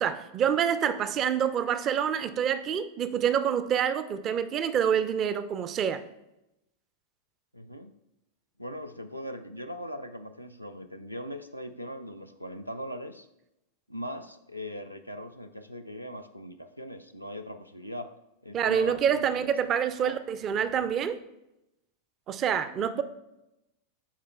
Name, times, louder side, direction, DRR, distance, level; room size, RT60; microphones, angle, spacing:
voice 1, 0.0-6.0 18.5-21.2 22.3-23.0, right 8 dB, 30° right, 13 dB, 0.4 m, -27 dB
voice 2, 7.5-7.9 8.6-13.3 13.9-18.1 18.4-19.5 20.0-20.2 22.9-23.0, equal, 90° right, 6 dB, 0.4 m, -40 dB
13.0 x 4.7 x 2.3 m, 0.88 s
figure-of-eight pair, 90°, 0 cm